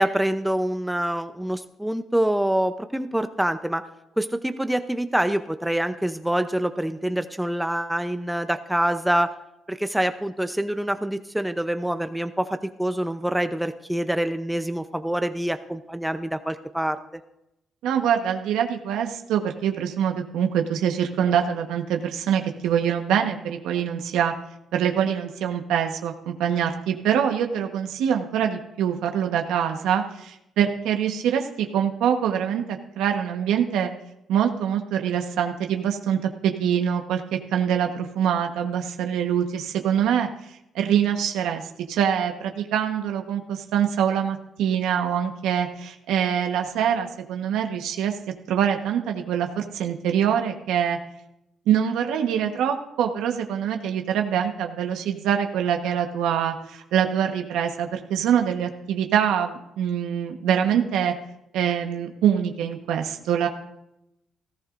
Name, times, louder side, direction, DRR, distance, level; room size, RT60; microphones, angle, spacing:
voice 1, 0.0-3.8 4.2-9.3 9.7-17.0, right 1 dB, 5° right, 9 dB, 0.7 m, -25 dB
voice 2, 17.8-24.3 24.7-33.9 34.3-40.3 40.7-41.6 41.9-48.2 48.5-51.0 51.7-61.1 61.5-63.5, right 8 dB, 90° right, 4 dB, 1.2 m, -24 dB
18.5 x 14.5 x 2.6 m, 0.84 s
cardioid pair, 90°, 0 cm